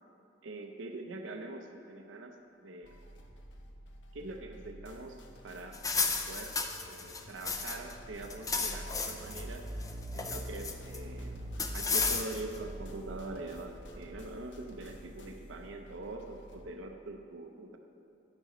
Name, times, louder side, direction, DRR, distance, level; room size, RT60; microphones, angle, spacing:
voice 1, 0.4-2.4 2.6-3.1 4.1-5.8 6.3-6.5 6.8-9.7 10.1-11.4 11.7-17.8, right 2 dB, 80° right, 4 dB, 0.7 m, -43 dB
sound 1, 2.8-16.7, equal, 70° left, 0.8 m, -53 dB
sound 2, 5.7-7.9 8.2-9.4 9.8-11.0 11.6-12.6, left 4 dB, 20° left, 0.5 m, -33 dB
sound 3, 7.2-15.0, right 1 dB, 45° right, 0.5 m, -44 dB
11.0 x 9.6 x 3.1 m, 2.6 s
head